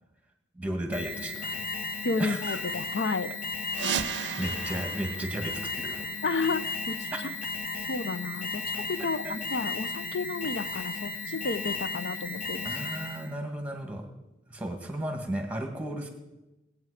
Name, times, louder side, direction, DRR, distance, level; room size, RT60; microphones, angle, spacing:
voice 1, 0.6-1.6 2.2-2.6 4.2-6.1 7.1-7.2 9.2-9.3 12.6-14.0 14.5-16.1, right 1 dB, 10° right, 4 dB, 1.8 m, -34 dB
Alarm, 0.9-13.3, left 3 dB, 50° left, 1.3 m, -35 dB
voice 2, 2.0-3.3 3.8-3.9 4.2-4.3 6.2-7.3 7.9-12.7, left 3 dB, 65° left, 13 dB, 0.6 m, -32 dB
sound 1, 3.7-6.3, right 8 dB, 65° right, 0.5 m, -36 dB
20.0 x 8.7 x 5.0 m, 1.0 s
head